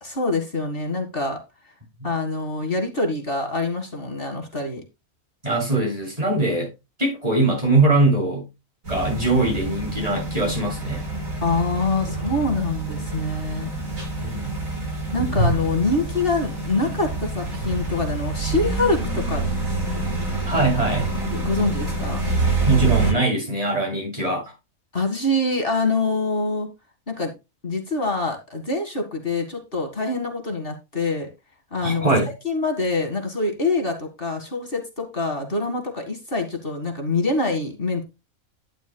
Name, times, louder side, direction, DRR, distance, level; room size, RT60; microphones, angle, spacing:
voice 1, 0.0-1.4 2.0-4.8 11.4-13.7 15.1-19.4 21.3-22.4 24.9-26.7 27.1-27.3 27.6-31.3 31.7-32.1 32.4-38.0, left 3 dB, 40° left, 2.1 m, -25 dB
voice 2, 5.4-6.7 7.0-8.4 8.9-11.0 14.2-14.5 20.5-21.1 22.7-24.5 31.8-32.3, right 2 dB, 25° right, 7.7 m, -21 dB
sound 1, 8.8-23.1, right 3 dB, 70° right, 5.4 m, -26 dB
11.5 x 10.5 x 2.2 m
omnidirectional pair, 1.5 m